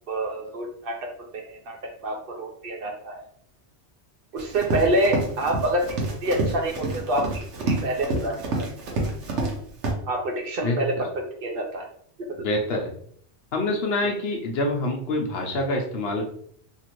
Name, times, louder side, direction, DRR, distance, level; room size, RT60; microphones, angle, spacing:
voice 1, 0.1-0.9 1.3-1.8 2.0-3.2 4.3-8.7 10.1-10.9 11.4-11.9 12.4-12.5 14.0-14.1, right 1 dB, 60° right, 2 dB, 0.7 m, -27 dB
Run, 4.4-9.6 9.8-9.9, right 2 dB, 80° right, 1.0 m, -28 dB
voice 2, 12.4-12.9 13.5-16.3, left 2 dB, 65° left, 2 dB, 0.8 m, -26 dB
2.7 x 2.5 x 2.9 m, 0.63 s
omnidirectional pair, 1.2 m